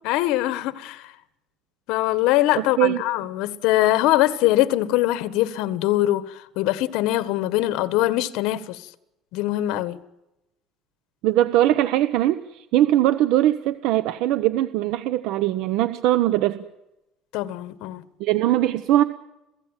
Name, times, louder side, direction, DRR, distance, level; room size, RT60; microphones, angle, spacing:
voice 1, 0.0-1.1 1.9-8.8 9.3-10.0 17.3-18.0, left 15 dB, 80° left, 1.6 m, -22 dB
voice 2, 2.6-3.0 11.2-12.4 12.7-16.6 18.2-19.0, right 13 dB, 75° right, 1.1 m, -20 dB
28.0 x 16.5 x 9.2 m
cardioid pair, 135°, 0 cm